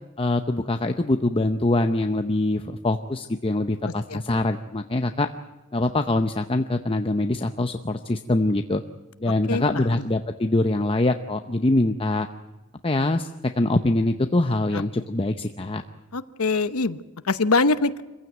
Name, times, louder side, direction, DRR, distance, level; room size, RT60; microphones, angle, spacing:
voice 1, 0.2-5.3 5.7-8.8 9.2-12.3 12.8-13.3 13.6-15.8, left 2 dB, 25° left, 7 dB, 0.7 m, -24 dB
voice 2, 3.8-4.2 9.5-9.6 9.9-10.0 14.7-14.8 16.1-17.0 17.2-18.0, left 3 dB, 85° left, 13 dB, 0.9 m, -23 dB
25.0 x 15.5 x 9.2 m, 1.1 s
head